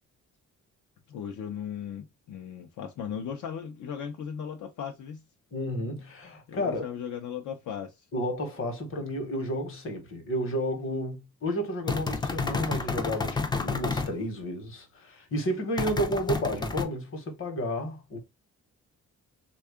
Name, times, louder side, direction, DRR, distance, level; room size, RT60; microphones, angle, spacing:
voice 1, 1.1-5.2 6.5-8.1, left 8 dB, 75° left, 0.6 m, -37 dB
voice 2, 5.5-6.8 8.1-18.2, equal, 45° left, 0.9 m, -32 dB
sound 1, 11.9-14.1 15.8-16.8, left 4 dB, 15° left, 0.3 m, -30 dB
3.5 x 2.3 x 3.4 m
wide cardioid pair, 155°, 30 cm